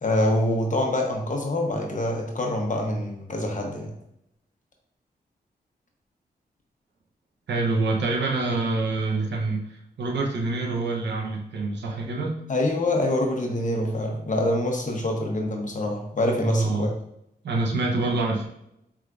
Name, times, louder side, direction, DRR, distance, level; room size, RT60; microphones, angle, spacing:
voice 1, 0.0-3.9 12.5-16.9, left 1 dB, 45° left, 1 dB, 1.0 m, -25 dB
voice 2, 7.5-9.6 10.0-12.4 16.4-16.9 17.4-18.5, right 3 dB, 90° right, 0 dB, 0.8 m, -26 dB
4.6 x 3.6 x 2.5 m, 0.78 s
cardioid pair, 65°, 17 cm